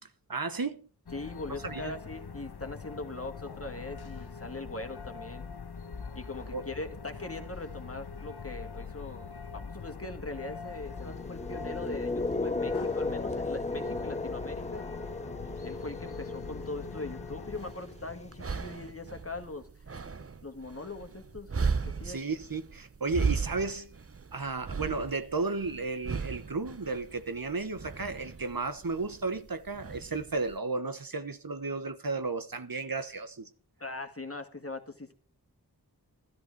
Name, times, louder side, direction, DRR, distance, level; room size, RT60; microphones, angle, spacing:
voice 1, 0.3-0.8 1.6-1.9 6.5-6.6 22.0-23.9 24.3-33.5, right 3 dB, 65° right, 1.1 m, -33 dB
sound 1, 1.1-17.7, left 5 dB, 80° left, 1.0 m, -43 dB
voice 2, 1.1-5.4 6.2-9.3 9.5-14.9 15.6-19.7 20.4-21.5 21.9-22.2 33.8-35.1, left 2 dB, 35° left, 1.9 m, -41 dB
sound 2, 10.9-19.0, left 3 dB, 20° left, 0.6 m, -36 dB
sound 3, 17.5-30.6, right 5 dB, 40° right, 0.6 m, -37 dB
13.0 x 12.0 x 4.6 m
wide cardioid pair, 40°, 38 cm